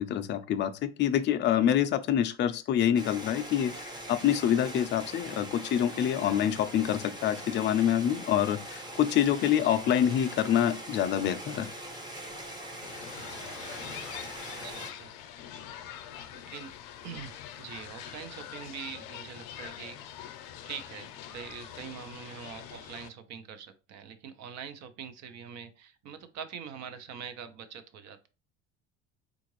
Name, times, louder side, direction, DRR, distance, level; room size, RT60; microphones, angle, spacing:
voice 1, 0.0-11.7, left 10 dB, 35° left, 0.4 m, -26 dB
sound 1, 2.9-14.9, right 1 dB, 15° right, 0.7 m, -42 dB
sound 2, 12.8-23.1, left 10 dB, 75° left, 0.6 m, -44 dB
voice 2, 13.1-14.0 14.5-15.2 16.3-16.7 17.0-20.0 20.4-28.3, right 7 dB, 55° right, 0.6 m, -44 dB
3.7 x 2.4 x 3.0 m
cardioid pair, 115°, 33 cm